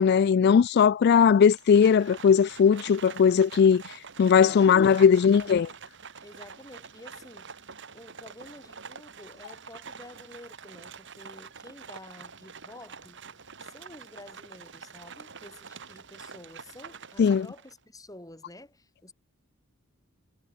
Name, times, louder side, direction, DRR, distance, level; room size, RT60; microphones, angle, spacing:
voice 1, 0.0-3.8 4.2-5.7 17.2-17.5, left 7 dB, 50° left, 0.3 m, -19 dB
Livestock farm animals working animals, 1.4-17.8, right 6 dB, 60° right, 3.1 m, -46 dB
voice 2, 4.4-5.6 6.2-7.5 7.9-13.2 13.6-19.1, left 1 dB, 15° left, 7.7 m, -50 dB
head